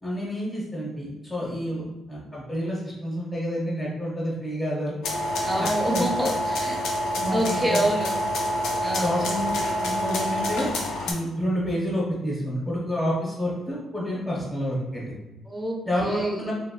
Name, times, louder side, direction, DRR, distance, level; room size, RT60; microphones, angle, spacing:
voice 1, 0.0-4.9 5.6-5.7 5.9-6.3 7.1-7.8 8.9-10.7 11.1-15.1 15.9-16.5, equal, 20° left, -6 dB, 1.0 m, -29 dB
sound 1, 5.0-11.1, equal, 85° left, 0.6 m, -27 dB
voice 2, 5.4-6.8 7.1-8.1 8.8-9.2 15.5-16.4, right 1 dB, 10° right, -1 dB, 0.7 m, -27 dB
2.9 x 2.6 x 2.8 m, 1.0 s
cardioid pair, 90°, 0 cm